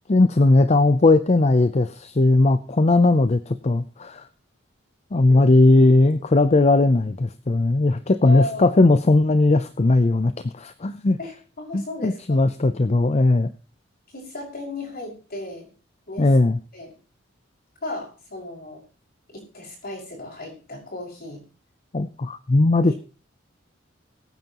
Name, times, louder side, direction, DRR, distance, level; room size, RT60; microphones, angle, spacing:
voice 1, 0.1-4.2 5.1-11.2 11.7-13.5 16.2-16.6 21.9-22.9, left 2 dB, 35° left, 11 dB, 0.6 m, -18 dB
voice 2, 8.3-8.8 11.2-12.4 14.1-15.7 16.1-16.3 16.7-17.0 17.8-18.8 19.3-21.4 22.7-22.9, left 2 dB, 55° left, -1 dB, 5.7 m, -35 dB
22.0 x 9.3 x 3.0 m, 0.36 s
head